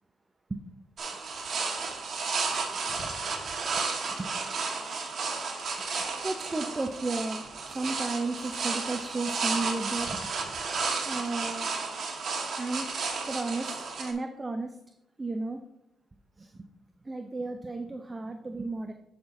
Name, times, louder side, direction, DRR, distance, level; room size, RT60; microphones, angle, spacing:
sound 1, 1.0-14.1, right 4 dB, 55° right, 1.4 m, -33 dB
voice 1, 6.2-7.4 7.7-10.5 11.0-11.7 12.6-12.9 13.2-13.7 14.0-14.8 15.2-15.6 16.4-16.7 17.0-18.9, right 3 dB, 25° right, 6 dB, 0.5 m, -33 dB
11.0 x 5.8 x 2.6 m, 0.82 s
cardioid pair, 90°, 0 cm